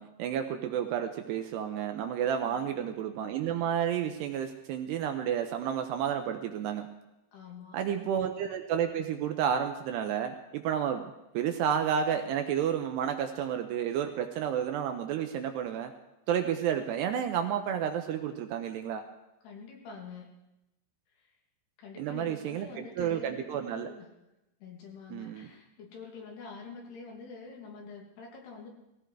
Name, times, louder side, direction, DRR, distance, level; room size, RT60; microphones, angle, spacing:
voice 1, 0.0-6.9 7.7-11.1 11.3-15.9 16.3-19.0 22.0-23.9 25.1-25.5, right 9 dB, 75° right, 6 dB, 2.7 m, -31 dB
voice 2, 2.5-3.0 7.3-7.8 8.0-8.1 19.4-20.3 21.1-21.3 21.8-24.1 24.6-28.7, left 5 dB, 65° left, 0 dB, 4.4 m, -46 dB
19.0 x 16.5 x 4.6 m, 0.92 s
omnidirectional pair, 5.4 m